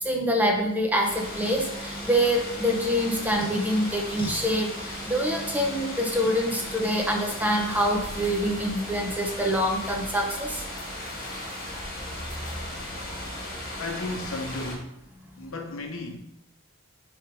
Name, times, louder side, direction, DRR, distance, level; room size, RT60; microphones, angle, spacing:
voice 1, 0.0-10.6, equal, 5° right, 1 dB, 0.7 m, -25 dB
sound 1, 1.0-14.8, left 1 dB, 40° left, 1.9 m, -37 dB
sound 2, 1.2-7.9, right 1 dB, 25° left, 1.2 m, -40 dB
voice 2, 13.8-15.0 15.4-16.2, left 2 dB, 65° left, 4 dB, 0.9 m, -34 dB
6.2 x 3.6 x 5.0 m, 0.83 s
head